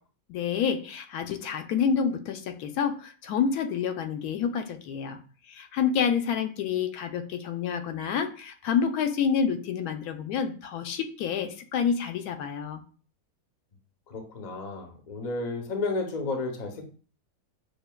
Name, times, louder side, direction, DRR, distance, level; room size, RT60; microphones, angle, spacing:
voice 1, 0.3-5.2 5.5-12.8, left 7 dB, 80° left, 6 dB, 1.1 m, -28 dB
voice 2, 14.1-16.8, left 3 dB, 40° left, 3 dB, 0.6 m, -32 dB
6.5 x 2.6 x 2.2 m, 0.40 s
omnidirectional pair, 1.6 m